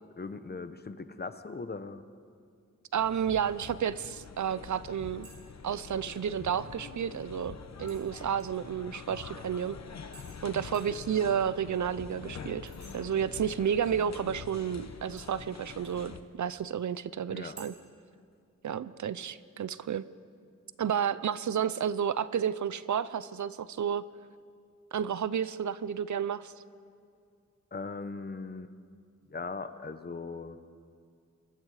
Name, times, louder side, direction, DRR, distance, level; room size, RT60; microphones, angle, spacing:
voice 1, 0.2-2.0 10.6-10.8 17.3-17.6 27.7-28.7 29.3-30.6, left 4 dB, 30° left, 10 dB, 0.9 m, -39 dB
voice 2, 2.9-5.3 5.6-9.8 10.4-17.7 18.6-20.1 20.8-24.0 24.9-26.5, right 8 dB, 70° right, 16 dB, 0.6 m, -31 dB
sound 1, 3.0-16.2, left 6 dB, 60° left, 1.1 m, -45 dB
sound 2, 5.2-5.4 5.7-6.2 7.9-8.7 10.1-10.4 10.7-11.0 12.7-13.0 15.2-16.0 17.6-17.7, right 3 dB, 50° right, 4.0 m, -54 dB
28.0 x 21.5 x 4.9 m, 2.3 s
wide cardioid pair, 165°, 30 cm